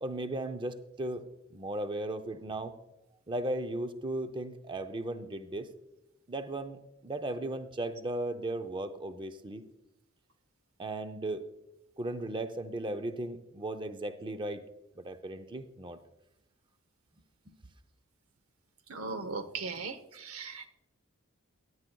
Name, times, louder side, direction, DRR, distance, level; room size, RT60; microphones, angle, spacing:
voice 1, 0.0-2.7 3.3-5.7 6.3-9.6 10.8-11.5 12.0-14.6 15.0-16.0 17.5-17.6, right 1 dB, 20° right, 9 dB, 0.5 m, -36 dB
voice 2, 18.9-20.7, right 4 dB, 70° right, 10 dB, 0.9 m, -38 dB
17.5 x 9.5 x 2.3 m, 0.92 s
head